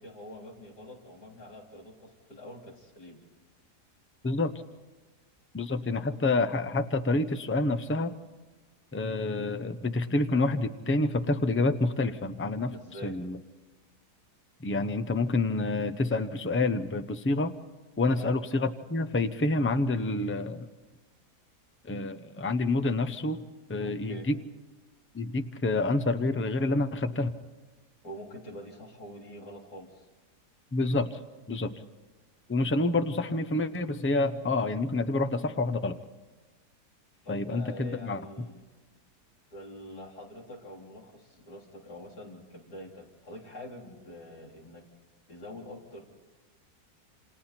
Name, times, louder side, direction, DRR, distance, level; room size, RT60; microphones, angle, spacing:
voice 1, 0.0-3.2 12.7-13.2 18.1-18.4 23.8-24.3 28.0-30.1 37.2-38.6 39.5-44.8 45.3-46.1, equal, 70° left, -2 dB, 4.3 m, -45 dB
voice 2, 5.5-8.1 8.9-12.7 13.0-13.4 14.6-17.5 18.0-20.7 21.9-23.4 23.7-24.4 25.1-27.3 30.7-31.2 31.5-31.7 32.5-36.0 37.3-38.2, left 2 dB, 15° left, 9 dB, 0.4 m, -28 dB
27.5 x 27.5 x 4.4 m, 1.2 s
omnidirectional pair, 1.8 m